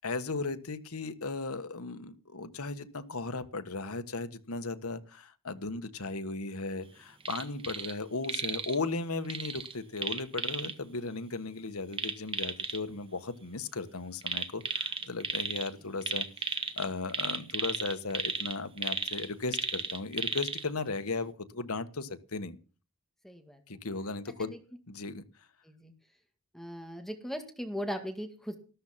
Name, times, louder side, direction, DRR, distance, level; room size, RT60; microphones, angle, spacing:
voice 1, 0.0-16.5 16.8-22.6 23.7-24.5 24.9-25.2, left 3 dB, 80° left, 10 dB, 1.5 m, -36 dB
sound 1, 7.2-7.9 8.2-8.8 9.3-10.7 11.9-12.8 14.2-15.7 16.0-20.6 21.1-21.2, right 5 dB, 25° right, 1.4 m, -34 dB
voice 2, 23.2-23.8 24.4-24.6 25.6-25.9 26.5-28.6, equal, ahead, 5 dB, 1.9 m, -39 dB
14.0 x 13.0 x 5.9 m, 0.36 s
head